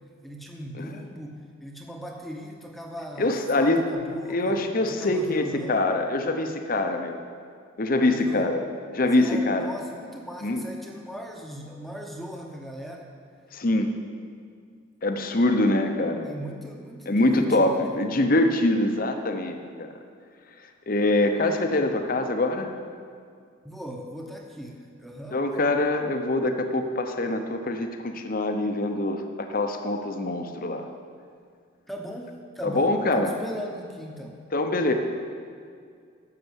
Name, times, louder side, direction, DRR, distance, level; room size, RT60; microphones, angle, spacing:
voice 1, 0.2-5.8 8.0-8.5 9.0-13.1 16.2-17.7 23.6-25.5 31.9-34.4, equal, ahead, 1 dB, 1.0 m, -39 dB
voice 2, 3.2-3.8 4.3-7.2 7.8-8.6 8.9-9.7 10.4-10.6 13.5-13.9 15.0-16.3 17.1-19.9 20.9-22.7 25.3-30.9 32.6-33.3 34.5-34.9, left 2 dB, 45° left, 6 dB, 0.9 m, -24 dB
12.5 x 6.9 x 8.0 m, 2.2 s
head